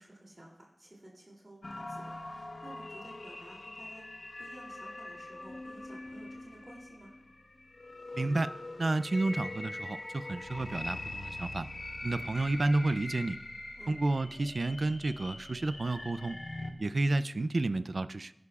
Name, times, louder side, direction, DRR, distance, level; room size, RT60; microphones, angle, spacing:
voice 1, 0.0-4.0 4.4-7.1 13.8-13.9, right 1 dB, 40° right, -3 dB, 2.9 m, -53 dB
sound 1, 1.6-16.7, left 2 dB, 60° left, 1.0 m, -43 dB
voice 2, 8.1-8.5 8.8-11.7 12.0-13.4 13.9-16.4 16.8-18.3, right 2 dB, 70° right, 13 dB, 0.4 m, -31 dB
21.0 x 11.0 x 2.4 m, 0.88 s
wide cardioid pair, 65°, 0 cm